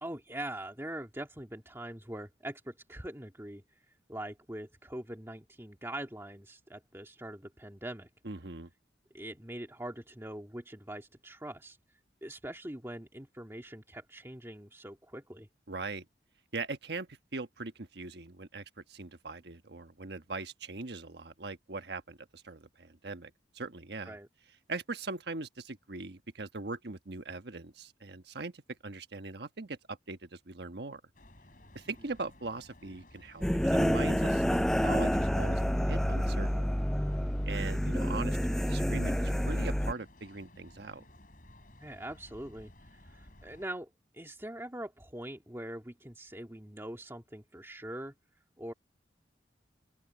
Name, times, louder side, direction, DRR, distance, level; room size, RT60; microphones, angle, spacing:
voice 1, 0.0-3.6 4.1-8.1 9.1-11.8 12.2-15.5 24.1-24.3 41.8-48.1 48.6-48.7, right 1 dB, 15° right, 2.1 m, -43 dB
voice 2, 8.2-8.7 15.7-16.1 16.5-24.2 24.7-31.0 31.7-36.7 37.5-41.0, right 3 dB, 65° right, 1.3 m, -41 dB
sound 1, 31.1-43.7, left 1 dB, 50° left, 5.5 m, -57 dB
sound 2, 33.4-39.9, equal, 5° left, 0.3 m, -28 dB
open air
head